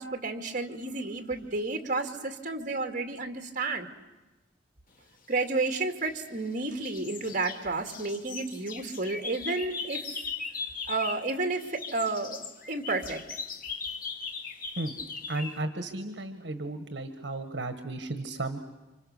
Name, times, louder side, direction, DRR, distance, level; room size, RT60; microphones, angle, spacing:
voice 1, 0.0-3.9 5.3-10.0 10.9-13.2, right 3 dB, 45° right, 5 dB, 2.3 m, -31 dB
sound 1, 5.7-6.5 6.8-11.3 11.6-15.6, left 5 dB, 50° left, 1.7 m, -39 dB
voice 2, 15.3-18.6, right 2 dB, 65° right, 8 dB, 1.5 m, -34 dB
30.0 x 26.0 x 6.7 m, 1.1 s
head